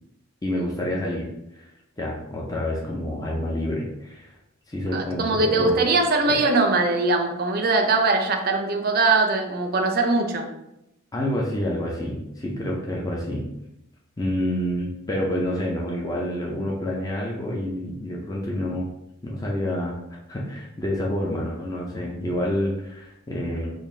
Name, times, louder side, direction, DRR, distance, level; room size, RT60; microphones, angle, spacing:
voice 1, 0.4-1.7 2.0-4.3 4.7-5.8 6.3-6.4 11.1-13.5 14.2-18.9 19.2-20.0 20.3-23.7, left 1 dB, 15° left, -3 dB, 0.4 m, -28 dB
voice 2, 4.9-10.5, right 3 dB, 45° right, 4 dB, 0.5 m, -21 dB
3.8 x 2.6 x 3.2 m, 0.87 s
head